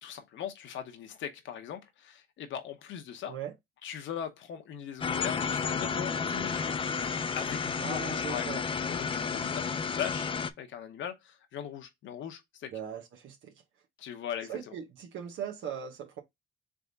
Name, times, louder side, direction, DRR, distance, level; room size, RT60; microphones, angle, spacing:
voice 1, 0.0-3.4 3.8-6.9 7.3-12.7 14.0-14.7, left 9 dB, 70° left, 0.8 m, -40 dB
sound 1, 5.0-10.5, left 6 dB, 25° left, 0.4 m, -32 dB
voice 2, 7.8-8.6 12.7-13.5 14.5-16.2, right 8 dB, 80° right, 1.0 m, -39 dB
3.6 x 3.4 x 3.9 m
cardioid pair, 90°, 20 cm